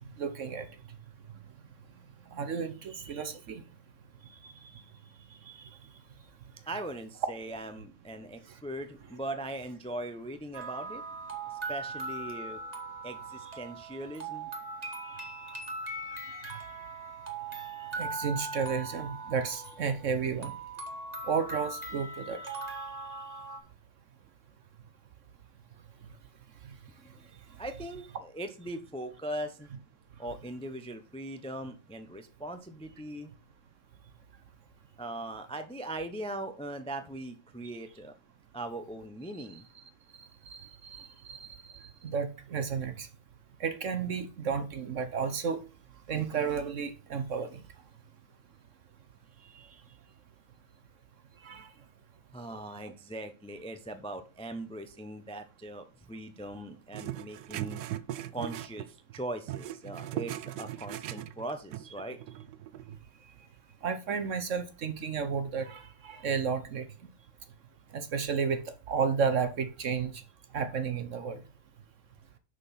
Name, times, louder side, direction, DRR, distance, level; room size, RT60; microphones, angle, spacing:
voice 1, 0.2-0.7 2.3-3.6 4.4-4.5 5.5-5.6 16.3-16.6 18.0-20.5 21.3-22.6 39.4-39.5 40.2-41.5 41.7-43.1 43.6-45.6 46.1-47.6 51.4-51.7 63.8-66.9 67.9-68.6 68.9-70.2 70.5-71.4, right 6 dB, 55° right, 1.0 m, -32 dB
voice 2, 6.7-11.0 11.7-12.6 13.0-14.5 27.0-27.3 27.6-29.7 30.2-33.3 35.0-38.1 38.5-39.7 52.3-57.8 58.3-62.2, right 1 dB, 5° left, 0.5 m, -40 dB
sound 1, 10.5-23.6, right 2 dB, 25° right, 1.7 m, -40 dB
sound 2, 56.9-59.2 59.5-63.0, right 13 dB, 90° right, 1.2 m, -39 dB
6.6 x 6.1 x 5.6 m
omnidirectional pair, 1.8 m